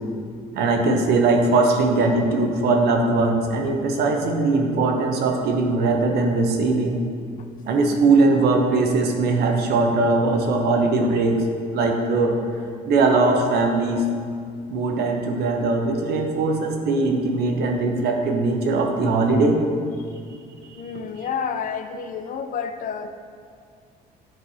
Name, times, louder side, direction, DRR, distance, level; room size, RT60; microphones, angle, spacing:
voice 1, 0.5-7.0 7.6-11.4 11.7-12.3 12.8-14.1 14.7-19.6, right 3 dB, 70° right, 3 dB, 0.8 m, -20 dB
voice 2, 20.7-23.1, left 6 dB, 55° left, 7 dB, 0.5 m, -30 dB
9.0 x 3.3 x 4.1 m, 2.3 s
cardioid pair, 110°, 17 cm